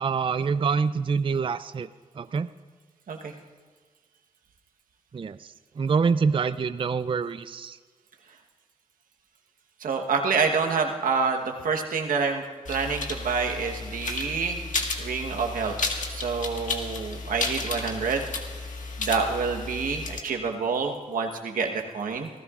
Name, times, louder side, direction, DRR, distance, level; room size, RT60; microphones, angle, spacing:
voice 1, 0.0-1.9 2.2-2.5 5.1-7.8, right 5 dB, 40° right, 12 dB, 0.4 m, -26 dB
voice 2, 9.8-14.6 15.0-15.8 16.1-18.2 19.0-22.3, right 5 dB, 80° right, 3 dB, 1.2 m, -27 dB
sound 1, 12.7-20.2, left 3 dB, 65° left, 1.7 m, -33 dB
25.5 x 15.5 x 2.5 m, 1.5 s
cardioid pair, 55°, 14 cm